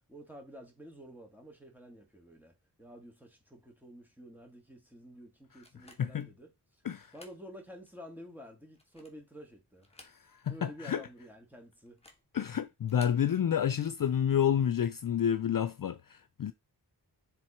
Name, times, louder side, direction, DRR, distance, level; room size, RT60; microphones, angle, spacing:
voice 1, 0.1-6.8 7.1-9.9 10.5-12.0, equal, 5° right, 2.2 m, -50 dB
sound 1, 5.6-6.3 6.9-7.4 7.9-8.0 8.6-9.3 9.8-10.6 10.8-10.9 11.9-12.3 12.8-13.3, left 1 dB, 15° left, 1.5 m, -57 dB
voice 2, 10.4-11.0 12.3-16.5, left 9 dB, 55° left, 0.5 m, -29 dB
7.6 x 3.7 x 4.4 m
wide cardioid pair, 60°, 41 cm